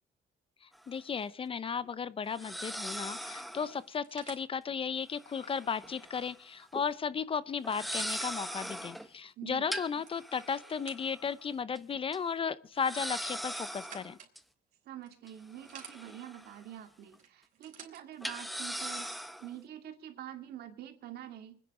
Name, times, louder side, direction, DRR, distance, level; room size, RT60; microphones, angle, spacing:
voice 1, 0.6-14.2, left 6 dB, 30° left, 0.7 m, -35 dB
sound 1, 0.7-0.8 2.3-3.8 5.2-6.3 6.6-6.8 7.6-9.1 9.7-11.3 11.7-11.8 12.1-12.2 12.8-14.4 15.3-16.7 17.0-17.1 18.2-19.5, equal, ahead, 1.0 m, -40 dB
sound 2, 1.5-1.8 2.4-4.5 6.5-6.6 6.9-7.0 7.5-8.3 8.9-9.0 9.8-11.4 13.0-14.4 15.0-16.0 17.2-18.0 19.0-19.1, right 7 dB, 50° right, 4.0 m, -53 dB
voice 2, 9.4-9.7 14.8-21.6, right 11 dB, 70° right, 2.5 m, -46 dB
25.0 x 10.0 x 5.0 m
cardioid pair, 110°, 17 cm